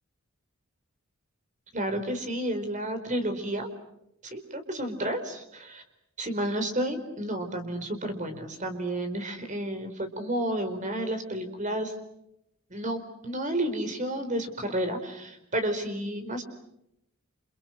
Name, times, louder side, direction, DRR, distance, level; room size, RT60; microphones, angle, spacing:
voice 1, 1.7-3.7 4.2-5.8 6.2-11.9 12.7-16.4, right 1 dB, 35° right, 7 dB, 4.5 m, -31 dB
30.0 x 29.5 x 6.5 m, 0.81 s
head